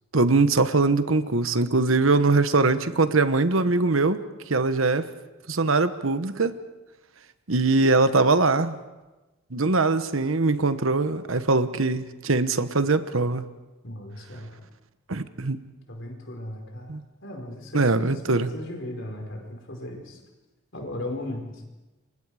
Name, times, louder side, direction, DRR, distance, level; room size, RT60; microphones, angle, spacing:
voice 1, 0.1-4.2 4.5-5.1 5.5-6.6 7.5-8.8 9.5-13.4 15.1-15.6 16.9-17.0 17.7-18.5, right 3 dB, 70° right, 11 dB, 1.1 m, -22 dB
voice 2, 13.8-14.6 15.9-20.2 20.7-21.6, left 1 dB, 60° left, 2 dB, 4.9 m, -37 dB
29.0 x 24.5 x 5.0 m, 1.1 s
head